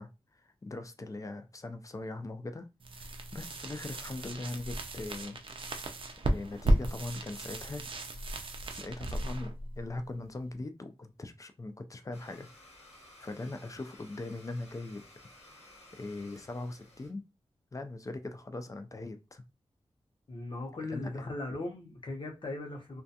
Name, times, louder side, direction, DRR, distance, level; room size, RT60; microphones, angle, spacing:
voice 1, 0.0-2.7 3.0-5.4 6.2-7.9 8.7-12.5 13.2-15.0 15.9-17.2 17.7-19.4 20.9-21.3, left 2 dB, 30° left, 0.4 m, -40 dB
sound 1, 2.8-10.6, right 1 dB, 55° right, 0.4 m, -34 dB
Domestic sounds home sounds, 12.1-17.1, left 1 dB, 80° left, 1.0 m, -56 dB
voice 2, 20.3-23.0, left 2 dB, 50° left, 0.8 m, -38 dB
2.4 x 2.2 x 2.7 m
wide cardioid pair, 75°, 11 cm